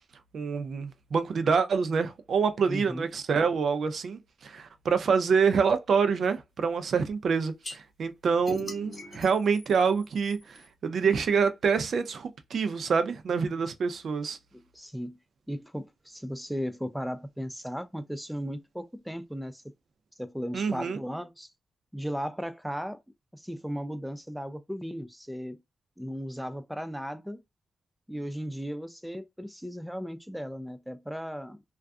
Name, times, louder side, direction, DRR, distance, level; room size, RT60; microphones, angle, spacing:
voice 1, 0.3-14.4 20.5-21.0, right 5 dB, 70° right, 0.4 m, -26 dB
voice 2, 2.7-3.0 14.7-15.2 15.5-19.6 20.2-21.5 21.9-23.0 23.3-25.6 26.0-27.4 28.1-31.6, equal, ahead, 0.3 m, -36 dB
sound 1, 7.6-7.8 8.5-10.7, left 2 dB, 40° left, 0.8 m, -41 dB
2.5 x 2.3 x 2.3 m
wide cardioid pair, 105°, 0 cm